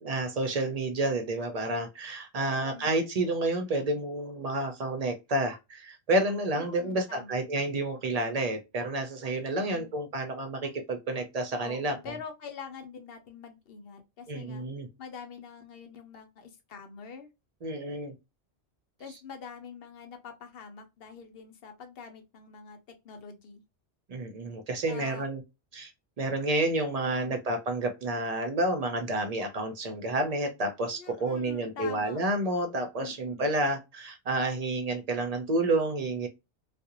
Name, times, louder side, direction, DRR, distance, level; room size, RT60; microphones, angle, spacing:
voice 1, 0.0-12.1 14.3-14.9 17.6-18.1 24.1-25.4 25.7-25.9 26.2-36.3, right 2 dB, 55° right, 0.4 m, -30 dB
voice 2, 2.4-2.9 6.5-7.4 9.5-9.9 11.6-14.6 15.0-17.3 19.0-22.8 23.0-23.6 24.9-25.3 27.0-27.4 31.0-32.2 33.0-33.5, left 6 dB, 65° left, 0.8 m, -45 dB
2.4 x 2.0 x 2.8 m
omnidirectional pair, 1.1 m